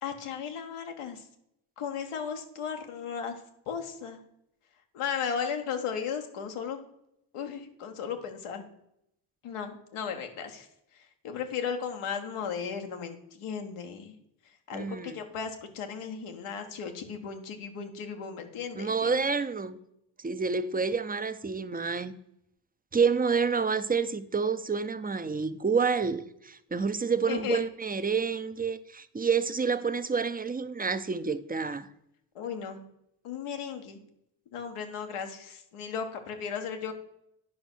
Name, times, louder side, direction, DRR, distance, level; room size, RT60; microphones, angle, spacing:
voice 1, 0.0-1.3 1.8-4.2 4.9-6.8 7.3-8.7 9.4-10.7 10.9-14.1 14.7-19.2 27.3-27.6 32.3-32.8 33.2-34.0 34.5-36.9, left 7 dB, 90° left, 1.4 m, -36 dB
voice 2, 14.7-15.2 18.7-19.8 20.2-22.2 22.9-31.9, right 5 dB, 20° right, 0.6 m, -28 dB
10.0 x 5.3 x 6.1 m
cardioid pair, 70°, 49 cm